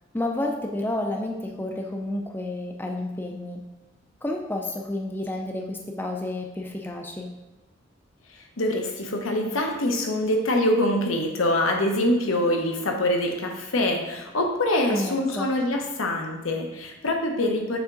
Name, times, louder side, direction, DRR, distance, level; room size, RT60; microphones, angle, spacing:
voice 1, 0.1-3.6 4.2-7.3 14.9-15.5, left 1 dB, 10° left, 1 dB, 0.4 m, -30 dB
voice 2, 8.6-17.8, left 1 dB, 90° left, 2 dB, 0.9 m, -24 dB
7.1 x 3.6 x 3.8 m, 1.1 s
head